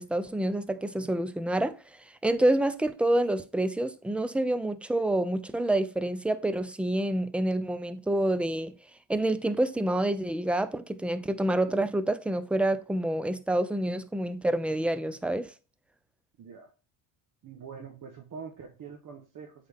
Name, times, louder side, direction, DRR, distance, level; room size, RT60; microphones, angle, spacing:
voice 1, 0.0-1.7 2.2-8.7 9.1-15.5, right 1 dB, 5° right, 0.4 m, -27 dB
voice 2, 16.4-16.7 17.4-19.7, right 6 dB, 40° right, 1.1 m, -44 dB
8.0 x 4.0 x 3.4 m
cardioid pair, 100°, 48 cm